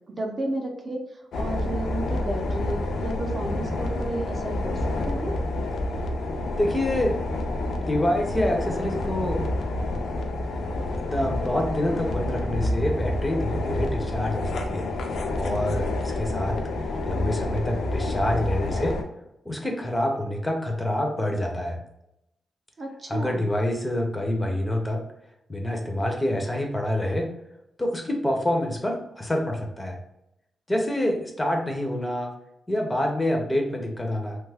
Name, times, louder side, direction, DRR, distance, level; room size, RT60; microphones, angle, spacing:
voice 1, 0.1-5.3 22.8-23.5, right 1 dB, 35° right, 2 dB, 0.5 m, -32 dB
sound 1, 1.3-19.0, left 2 dB, 80° left, 0.4 m, -28 dB
voice 2, 6.6-7.2 7.9-9.4 11.0-14.9 15.3-16.6 17.1-19.0 19.5-21.8 23.1-25.0 25.5-27.3 27.8-30.0 30.7-32.3 32.7-34.4, left 1 dB, 15° left, 2 dB, 0.5 m, -27 dB
3.0 x 2.2 x 3.3 m, 0.83 s
wide cardioid pair, 130°, 0 cm